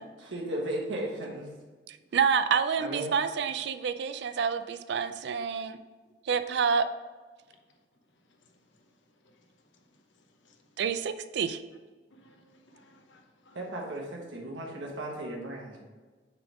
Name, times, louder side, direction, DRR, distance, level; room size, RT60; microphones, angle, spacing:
voice 1, 0.2-1.5 2.8-3.1 13.5-15.8, right 1 dB, 85° right, -2 dB, 1.3 m, -35 dB
voice 2, 1.9-5.8 6.3-6.8 10.8-11.6, right 6 dB, 65° right, 11 dB, 0.4 m, -28 dB
voice 3, 8.4-8.8 9.2-9.5 10.1-10.6 12.1-13.6, left 1 dB, 90° left, 3 dB, 0.9 m, -61 dB
6.7 x 3.5 x 5.0 m, 1.4 s
head